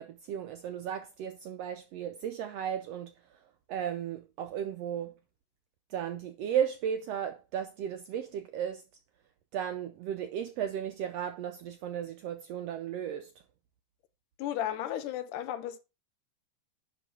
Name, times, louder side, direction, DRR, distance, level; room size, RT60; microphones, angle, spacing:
voice 1, 0.0-3.1 3.7-5.1 5.9-8.8 9.5-13.3, right 9 dB, 80° right, 1.4 m, -35 dB
voice 2, 14.4-15.8, left 11 dB, 90° left, 2.4 m, -34 dB
10.5 x 3.7 x 5.9 m
omnidirectional pair, 3.6 m